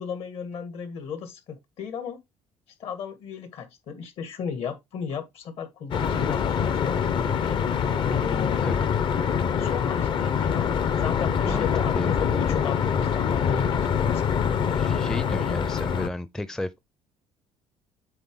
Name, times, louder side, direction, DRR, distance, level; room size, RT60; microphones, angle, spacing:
voice 1, 0.0-2.2 2.8-7.8 8.1-8.6 9.6-14.4, left 7 dB, 65° left, 1.9 m, -35 dB
sound 1, 5.9-16.1, left 7 dB, 50° left, 0.8 m, -24 dB
voice 2, 11.4-12.2 14.7-16.8, left 1 dB, 5° left, 0.4 m, -33 dB
7.9 x 4.1 x 3.7 m
cardioid pair, 110°, 11 cm